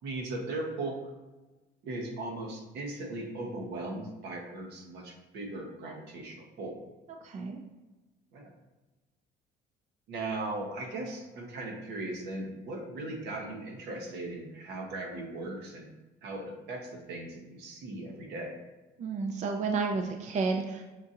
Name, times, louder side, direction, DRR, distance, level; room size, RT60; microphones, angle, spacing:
voice 1, 0.0-1.0 1.8-6.8 8.3-8.5 10.1-15.9 16.2-18.5, right 2 dB, 85° right, 1 dB, 1.0 m, -38 dB
voice 2, 7.2-7.6 19.0-20.8, right 4 dB, 45° right, 3 dB, 0.4 m, -31 dB
5.6 x 2.7 x 2.5 m, 1.1 s
cardioid pair, 110°, 17 cm